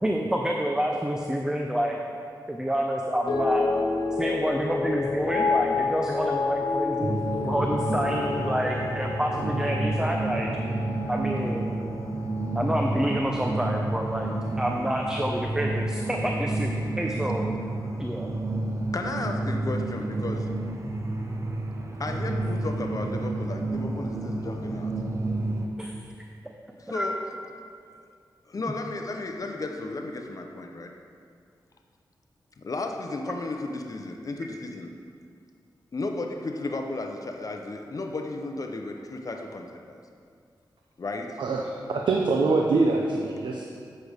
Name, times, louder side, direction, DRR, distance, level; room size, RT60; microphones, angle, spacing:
voice 1, 0.0-2.0 2.5-3.6 4.2-7.2 7.4-10.5 11.1-11.8 12.5-17.5 18.0-18.3 25.8-25.9 26.4-26.5 26.9-27.1, equal, 10° right, 1 dB, 0.6 m, -28 dB
sound 1, 3.3-13.6 13.9-14.5, left 4 dB, 75° left, 1.3 m, -30 dB
sound 2, 7.0-25.7, right 2 dB, 40° right, 0.8 m, -30 dB
voice 2, 18.9-20.5 22.0-24.9 26.8-27.1 28.5-30.9 32.6-34.9 35.9-40.0 41.0-41.4, left 2 dB, 45° left, 3 dB, 0.7 m, -34 dB
voice 3, 41.4-43.6, right 3 dB, 75° right, 0 dB, 0.7 m, -24 dB
8.3 x 6.5 x 5.0 m, 2.3 s
wide cardioid pair, 85°, 8 cm